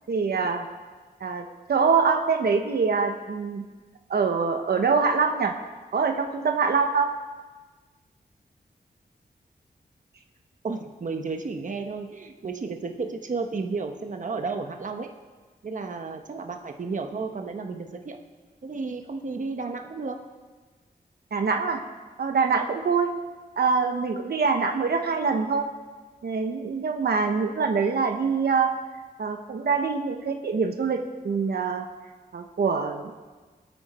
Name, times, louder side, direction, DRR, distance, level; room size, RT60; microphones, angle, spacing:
voice 1, 0.1-0.6 1.2-3.6 4.1-5.5 5.9-7.1 21.3-21.8 22.2-23.1 23.6-25.6 26.2-28.7 29.2-31.0 31.2-31.8 32.3-33.1, right 5 dB, 80° right, 5 dB, 1.1 m, -24 dB
voice 2, 10.6-15.1 15.6-18.2 18.6-20.2, right 4 dB, 50° right, 4 dB, 1.1 m, -32 dB
24.5 x 9.0 x 4.3 m, 1.4 s
wide cardioid pair, 125°, 16 cm